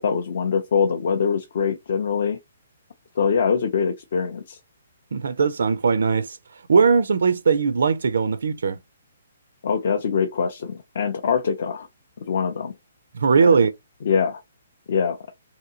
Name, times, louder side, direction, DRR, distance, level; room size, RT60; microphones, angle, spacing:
voice 1, 0.0-2.4 3.2-4.6 9.6-11.9 12.2-12.7 13.4-13.5 14.0-14.4 14.9-15.2, left 6 dB, 45° left, 0.4 m, -23 dB
voice 2, 5.1-6.4 6.7-8.8 13.1-13.7, right 5 dB, 70° right, 0.4 m, -19 dB
2.8 x 2.6 x 2.7 m
hypercardioid pair, 180°, 0 cm